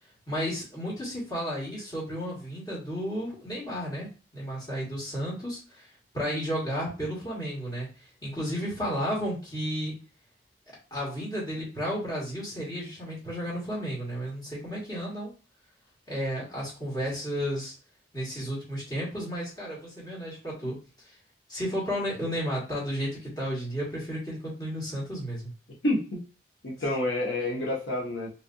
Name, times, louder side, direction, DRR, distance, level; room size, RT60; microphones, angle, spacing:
voice 1, 0.3-5.8 6.1-7.9 8.2-9.9 10.9-15.3 16.1-17.7 18.1-20.8 21.5-25.5, equal, 25° left, -7 dB, 1.6 m, -33 dB
voice 2, 25.8-26.2 26.6-28.3, left 1 dB, 85° left, -2 dB, 0.9 m, -28 dB
3.3 x 2.7 x 2.6 m, 0.35 s
head